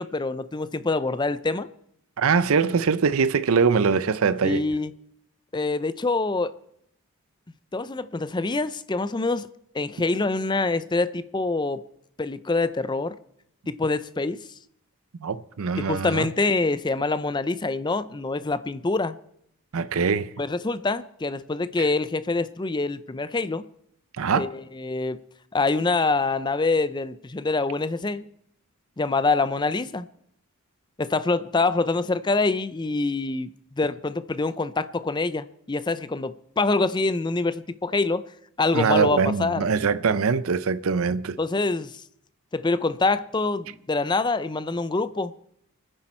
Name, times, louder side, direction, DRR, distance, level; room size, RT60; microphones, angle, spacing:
voice 1, 0.0-1.7 4.4-4.9 5.5-6.5 7.7-9.5 9.7-11.8 12.2-13.2 13.7-14.5 15.8-19.1 20.4-23.7 24.4-25.2 25.5-28.2 29.0-30.1 31.0-38.3 38.6-39.6 41.4-42.0 42.5-45.3, left 3 dB, 20° left, 0.5 m, -25 dB
voice 2, 2.2-4.6 15.2-16.3 19.7-20.3 24.2-24.5 38.7-41.4, right 5 dB, 70° right, 0.5 m, -22 dB
26.0 x 10.0 x 4.4 m
head